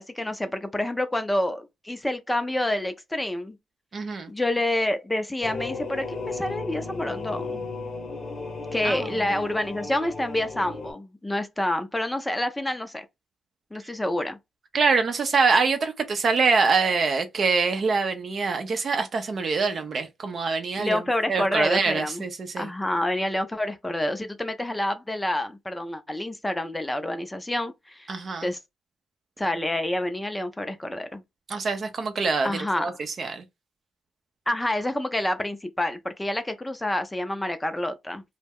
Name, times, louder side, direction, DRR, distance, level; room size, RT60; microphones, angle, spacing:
voice 1, 0.0-3.6 4.3-7.6 8.7-13.1 13.7-14.4 20.8-22.2 22.6-28.1 28.4-28.6 29.4-31.2 32.4-32.9 34.5-38.2, left 1 dB, 15° left, 0.5 m, -28 dB
voice 2, 3.9-4.3 8.8-9.1 14.7-21.0 21.3-22.7 28.1-28.5 31.5-32.9 33.2-33.4, right 4 dB, 55° right, 0.6 m, -24 dB
sound 1, 5.4-10.9, left 3 dB, 50° left, 0.8 m, -35 dB
2.2 x 2.1 x 3.4 m
supercardioid pair, 65°, 0 cm